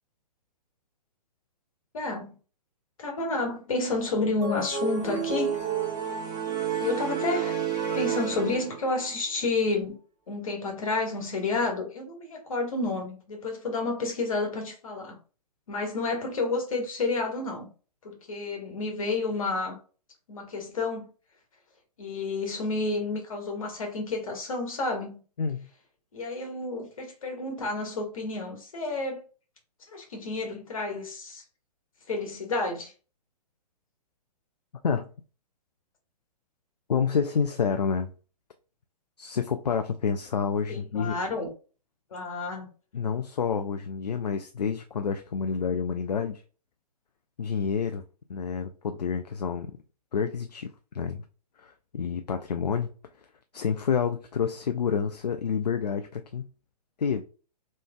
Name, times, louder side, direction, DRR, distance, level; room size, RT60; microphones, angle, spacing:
voice 1, 1.9-2.4 3.0-5.6 6.8-7.6 7.9-10.0 10.3-15.2 15.7-17.7 18.0-19.8 20.3-21.1 22.0-25.2 26.1-29.2 29.9-31.4 32.1-32.9 40.7-41.5 42.1-42.7, left 3 dB, 55° left, 1.3 m, -30 dB
sound 1, 4.4-9.1, right 8 dB, 15° right, 1.5 m, -30 dB
voice 2, 36.9-38.1 39.2-41.2 42.9-46.4 47.4-48.0 48.3-49.8 50.1-51.2 51.6-52.9 53.5-56.5 57.0-57.2, left 6 dB, 70° left, 0.4 m, -28 dB
3.2 x 3.2 x 2.2 m
figure-of-eight pair, 120°, 21 cm